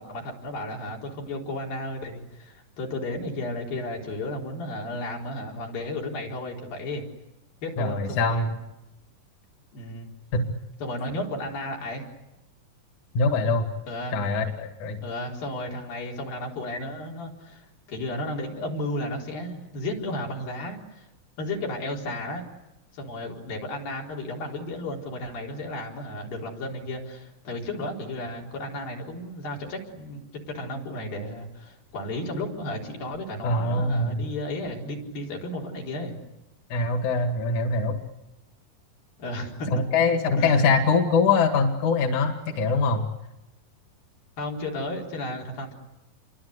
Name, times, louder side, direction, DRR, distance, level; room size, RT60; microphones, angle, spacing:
voice 1, 0.0-7.0 7.6-8.5 9.7-10.1 10.8-12.1 13.9-14.2 15.0-21.1 21.4-22.5 22.9-36.2 39.2-39.7 40.4-40.8 44.4-45.7, left 1 dB, 85° left, -1 dB, 6.3 m, -33 dB
voice 2, 7.8-8.6 10.3-10.4 13.1-13.7 14.1-15.0 33.4-34.2 36.7-37.9 39.7-43.0, left 4 dB, 60° left, 5 dB, 3.4 m, -23 dB
29.0 x 24.0 x 8.3 m, 0.96 s
omnidirectional pair, 4.0 m